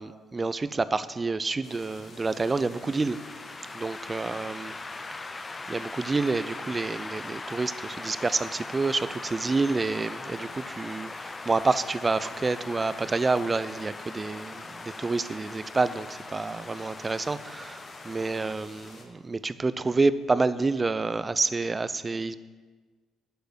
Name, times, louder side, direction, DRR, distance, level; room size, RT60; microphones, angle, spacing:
voice 1, 0.0-3.2 3.7-4.7 5.7-22.3, right 3 dB, 30° right, 14 dB, 0.6 m, -28 dB
sound 1, 1.6-19.1, left 3 dB, 50° left, 2.0 m, -49 dB
sound 2, 2.1-18.6, left 3 dB, 25° left, 0.4 m, -41 dB
9.7 x 6.8 x 8.0 m, 1.4 s
hypercardioid pair, 55°, 0 cm